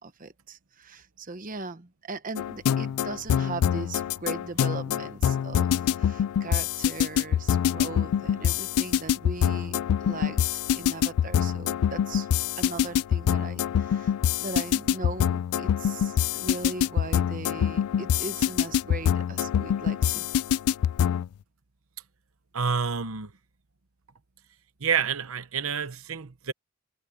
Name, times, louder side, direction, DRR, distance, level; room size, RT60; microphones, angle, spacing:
voice 1, 0.0-12.3 12.6-20.3, right 3 dB, 40° right, 1.1 m, -39 dB
sound 1, 2.4-21.3, left 9 dB, 90° left, 0.3 m, -25 dB
voice 2, 22.5-23.3 24.8-26.5, right 6 dB, 75° right, 1.0 m, -28 dB
head